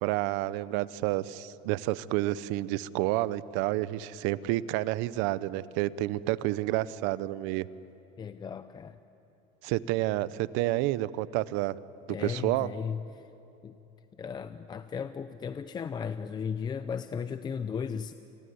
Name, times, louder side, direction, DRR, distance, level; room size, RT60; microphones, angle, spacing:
voice 1, 0.0-7.7 9.6-11.8 12.1-12.7, right 16 dB, 75° right, 18 dB, 0.8 m, -29 dB
voice 2, 8.2-9.0 12.1-13.3 13.6-13.8 14.2-18.1, left 6 dB, 20° left, 11 dB, 0.6 m, -36 dB
27.5 x 20.5 x 9.6 m, 3.0 s
cardioid pair, 150°, 20 cm